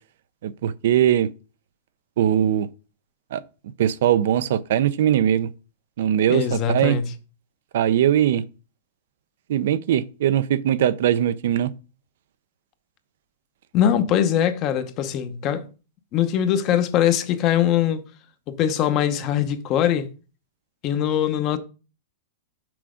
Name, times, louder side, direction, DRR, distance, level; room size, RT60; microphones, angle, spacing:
voice 1, 0.4-1.3 2.2-2.7 3.3-3.4 3.8-5.5 6.0-7.0 7.7-8.4 9.5-11.7, right 10 dB, 65° right, 0.5 m, -20 dB
voice 2, 6.3-7.0 13.7-15.6 16.1-18.0 18.5-20.1 20.8-21.6, left 10 dB, 30° left, 0.7 m, -22 dB
6.1 x 4.6 x 5.0 m
supercardioid pair, 160°, 0 cm